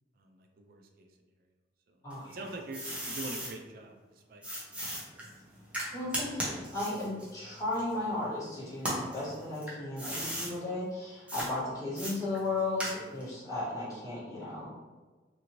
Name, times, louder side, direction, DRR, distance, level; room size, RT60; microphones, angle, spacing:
voice 1, 0.2-1.1 1.9-2.0 2.3-4.9 5.1-5.3, right 2 dB, 55° right, 3 dB, 0.3 m, -45 dB
voice 2, 2.0-2.4 5.9-14.7, left 2 dB, 20° left, -9 dB, 1.2 m, -35 dB
sound 1, 2.1-3.5 4.4-8.3 8.7-10.5 11.3-11.5 12.0-13.3, equal, 5° right, 0.7 m, -37 dB
2.8 x 2.6 x 2.9 m, 1.3 s
head